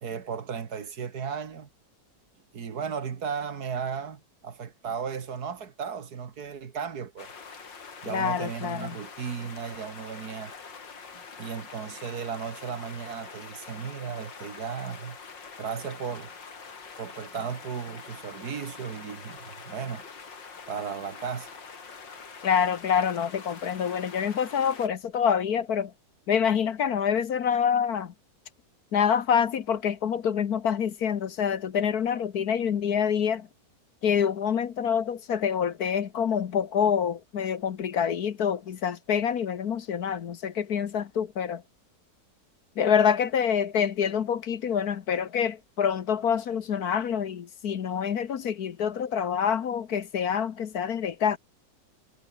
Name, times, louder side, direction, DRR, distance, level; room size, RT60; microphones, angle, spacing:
voice 1, 0.0-1.7 2.5-7.3 8.0-10.5 11.1-15.2 15.6-16.3 17.0-20.1 20.7-21.5, right 6 dB, 60° right, 2.0 m, -35 dB
sound 1, 7.2-24.9, left 5 dB, 80° left, 3.5 m, -45 dB
voice 2, 8.1-8.9 22.4-25.9 26.3-28.1 28.9-33.5 34.0-41.6 42.8-51.4, left 7 dB, 60° left, 1.5 m, -26 dB
omnidirectional pair, 1.9 m